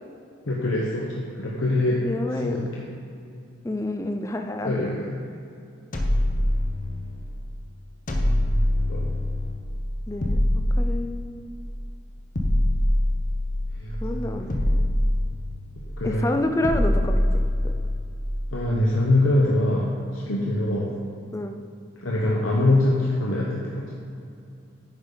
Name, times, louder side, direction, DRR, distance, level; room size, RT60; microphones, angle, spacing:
voice 1, 0.5-2.0 2.4-2.9 4.6-5.2 8.9-9.1 13.8-14.7 16.0-16.4 18.5-20.9 22.0-23.9, left 1 dB, 85° left, -4 dB, 1.0 m, -24 dB
voice 2, 2.0-2.6 3.6-4.9 10.1-11.5 14.0-14.6 16.0-17.2 17.6-17.7 21.3-21.6, left 1 dB, 15° left, 5 dB, 0.4 m, -28 dB
sound 1, 5.9-7.2 8.1-9.7 10.2-11.6 12.3-14.0 14.5-15.9 16.6-18.2, left 1 dB, 40° left, 0.9 m, -24 dB
9.8 x 7.0 x 3.9 m, 2.6 s
head